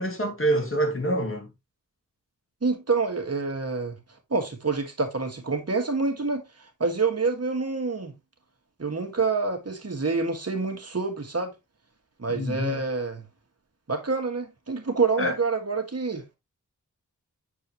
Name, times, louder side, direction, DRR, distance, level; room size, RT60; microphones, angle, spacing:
voice 1, 0.0-1.5 12.3-12.8 15.2-15.3, right 1 dB, 40° left, 2.4 m, -26 dB
voice 2, 2.6-4.0 4.3-8.1 8.8-11.5 12.2-13.2 13.9-16.2, right 4 dB, 50° right, 2.0 m, -27 dB
8.4 x 4.7 x 3.1 m
cardioid pair, 50°, 32 cm